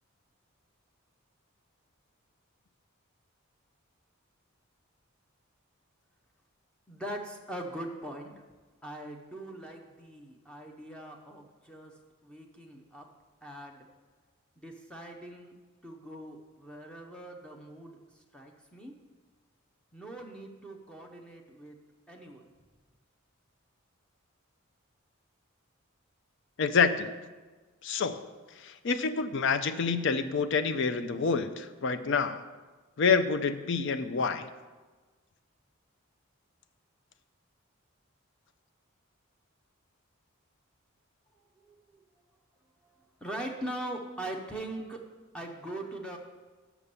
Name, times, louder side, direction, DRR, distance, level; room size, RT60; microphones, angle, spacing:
voice 1, 6.9-8.3 8.8-11.9 12.2-13.1 13.4-13.8 14.6-15.5 15.8-18.9 19.9-21.8 22.1-22.5 41.7-42.0 42.8-42.9 43.2-45.0 45.3-46.2, right 1 dB, 5° left, 1 dB, 0.7 m, -41 dB
voice 2, 26.6-27.1 27.8-28.3 28.6-32.4 33.0-34.5, left 5 dB, 60° left, 10 dB, 0.5 m, -27 dB
7.0 x 6.0 x 6.8 m, 1.3 s
head